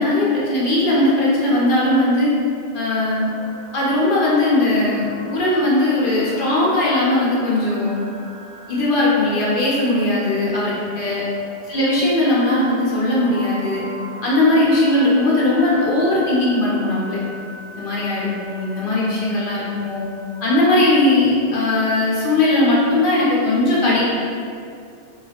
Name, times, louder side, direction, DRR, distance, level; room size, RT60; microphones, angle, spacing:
voice 1, 0.0-2.3 2.7-3.3 3.7-8.0 8.7-11.2 11.7-13.8 14.2-17.2 17.8-20.0 20.4-24.0, left 2 dB, 60° left, -6 dB, 0.6 m, -18 dB
sound 1, 3.2-21.0, right 1 dB, 85° left, 0.9 m, -39 dB
2.4 x 2.0 x 2.7 m, 2.4 s
omnidirectional pair, 1.2 m